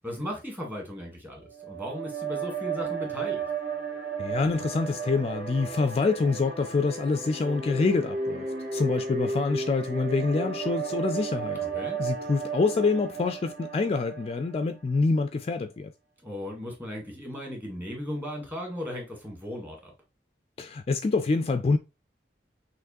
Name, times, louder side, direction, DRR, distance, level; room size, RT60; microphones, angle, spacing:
voice 1, 0.0-3.4 11.6-12.0 16.2-19.9, left 1 dB, 10° right, 1.7 m, -36 dB
sound 1, 1.5-14.9, right 5 dB, 50° right, 1.3 m, -34 dB
voice 2, 4.2-11.6 12.0-15.9 20.6-21.8, left 3 dB, 35° left, 0.3 m, -26 dB
5.8 x 3.0 x 2.6 m
head